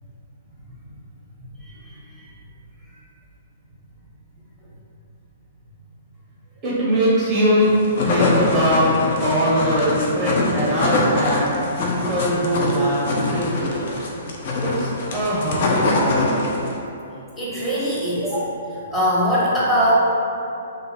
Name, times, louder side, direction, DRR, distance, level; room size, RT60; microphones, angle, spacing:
voice 1, 1.6-2.3 6.9-7.0 17.3-18.4 18.7-19.9, equal, 5° left, -10 dB, 0.8 m, -22 dB
voice 2, 6.6-7.7 8.0-8.9 9.2-13.9 14.6-16.3, equal, 25° right, -8 dB, 0.5 m, -21 dB
sound 1, 7.7-16.8, left 2 dB, 45° left, 0.4 m, -23 dB
2.5 x 2.4 x 3.2 m, 2.7 s
figure-of-eight pair, 115°, 0 cm